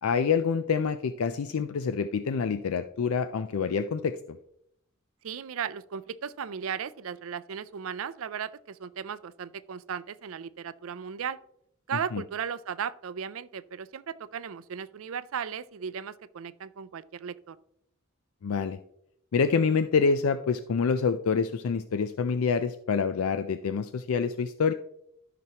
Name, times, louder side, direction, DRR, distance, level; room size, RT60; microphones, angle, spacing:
voice 1, 0.0-4.4 12.1-12.2 18.4-18.8 19.3-24.7, left 5 dB, 80° left, 10 dB, 0.4 m, -27 dB
voice 2, 5.2-11.4 11.9-17.6, right 7 dB, 65° right, 16 dB, 0.4 m, -36 dB
12.5 x 5.9 x 2.9 m, 0.75 s
head